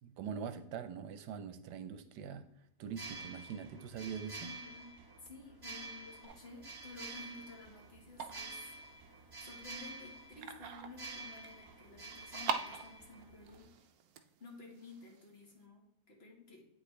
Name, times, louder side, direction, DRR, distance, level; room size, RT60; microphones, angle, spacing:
voice 1, 0.0-2.5 2.8-4.5, right 7 dB, 90° right, 10 dB, 1.2 m, -43 dB
sound 1, 2.8-13.6, right 3 dB, 20° right, 0.7 m, -49 dB
voice 2, 4.4-8.7 9.2-13.7 14.4-16.7, left 3 dB, 40° left, -1 dB, 1.6 m, -53 dB
sound 2, 6.2-15.6, right 6 dB, 70° right, 1.0 m, -46 dB
8.6 x 5.1 x 3.2 m, 0.80 s
omnidirectional pair, 1.8 m